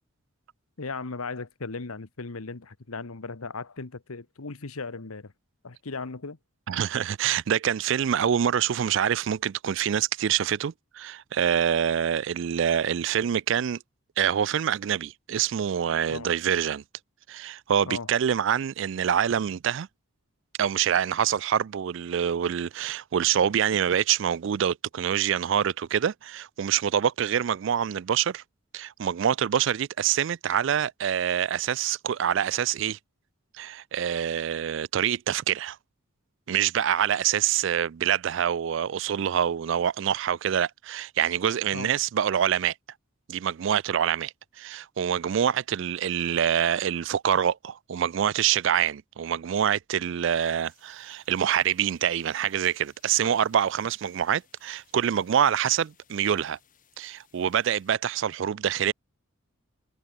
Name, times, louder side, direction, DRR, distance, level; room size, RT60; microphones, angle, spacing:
voice 1, 0.8-5.3 5.6-6.4 16.1-16.3 17.8-18.1 41.7-41.9, left 4 dB, 85° left, 1.2 m, -37 dB
voice 2, 6.7-13.8 14.2-16.8 17.3-19.9 20.6-28.4 28.7-33.0 33.6-35.8 36.5-42.7 43.3-56.6 57.0-58.9, right 9 dB, 60° right, 0.3 m, -26 dB
sound 1, 50.6-57.9, left 9 dB, 40° left, 5.6 m, -64 dB
head